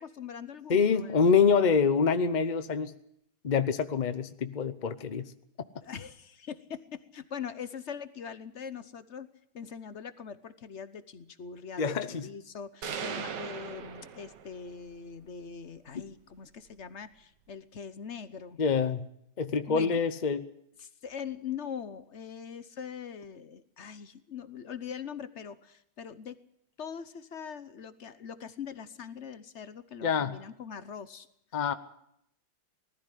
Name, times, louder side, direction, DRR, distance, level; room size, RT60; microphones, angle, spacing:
voice 1, 0.0-1.2 5.8-9.3 9.5-18.6 19.7-20.0 20.8-26.4 26.8-31.3, left 7 dB, 50° left, 13 dB, 0.9 m, -42 dB
voice 2, 0.7-2.9 3.4-5.3 11.8-12.3 18.6-19.1 19.4-20.5 30.0-30.4 31.5-31.7, left 5 dB, 80° left, 11 dB, 0.4 m, -26 dB
sound 1, 12.8-14.8, right 7 dB, 60° right, 1.8 m, -38 dB
19.5 x 14.0 x 10.0 m, 0.75 s
omnidirectional pair, 2.3 m